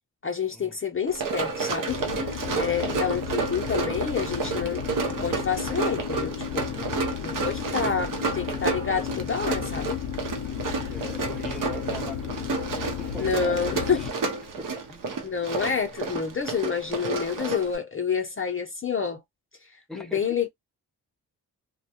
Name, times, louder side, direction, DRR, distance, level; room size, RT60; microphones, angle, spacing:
voice 1, 0.2-6.7 7.2-10.0 13.2-14.0 15.2-19.2 19.7-20.5, left 6 dB, 35° left, 0.6 m, -28 dB
Run, 1.1-17.8, right 4 dB, 55° right, 0.8 m, -31 dB
sound 1, 1.9-14.1, left 9 dB, 80° left, 0.6 m, -34 dB
voice 2, 2.6-2.9 6.7-7.1 10.8-13.7 14.0-14.1 14.6-15.3 19.9-20.3, left 2 dB, ahead, 0.8 m, -42 dB
2.2 x 2.2 x 2.7 m
cardioid pair, 55°, 38 cm